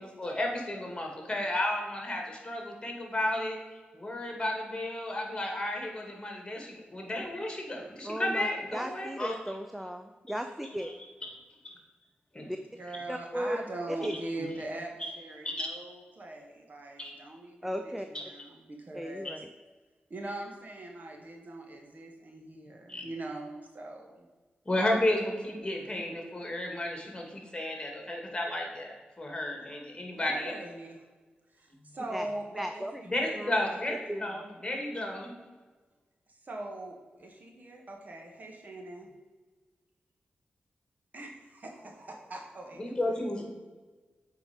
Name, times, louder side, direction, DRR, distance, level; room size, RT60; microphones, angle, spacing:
voice 1, 0.0-3.6 3.9-9.4 10.8-10.9 12.3-12.5 15.4-15.7 17.0-17.1 22.9-23.0 24.7-30.5 33.1-33.9 34.2-35.3 42.8-43.4, left 1 dB, 25° left, 1 dB, 2.4 m, -32 dB
voice 2, 8.0-10.9 12.4-12.6 13.1-13.6 13.9-14.1 17.6-18.1 18.9-19.5 32.1-32.3 32.6-33.0 33.3-33.5 33.9-34.2, equal, 5° right, 6 dB, 0.6 m, -36 dB
voice 3, 12.7-19.4 20.1-24.3 30.1-31.0 31.5-33.8 36.3-39.1 41.1-43.2, right 2 dB, 50° right, 1 dB, 1.8 m, -42 dB
7.9 x 4.7 x 5.4 m, 1.3 s
cardioid pair, 65°, 4 cm